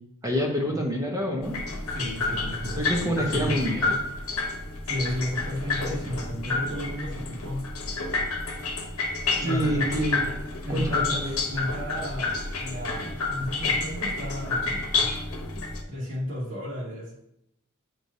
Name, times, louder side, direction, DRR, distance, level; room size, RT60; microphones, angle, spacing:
voice 1, 0.2-1.6 2.8-4.0 9.4-10.3 10.7-11.4, equal, 15° right, -1 dB, 1.0 m, -27 dB
sound 1, 1.4-15.8, left 3 dB, 85° left, 0.9 m, -29 dB
voice 2, 1.9-3.6 4.8-7.6 9.4-9.9 10.6-15.1 15.9-17.1, equal, 65° right, -8 dB, 2.4 m, -33 dB
7.9 x 4.7 x 2.7 m, 0.77 s
head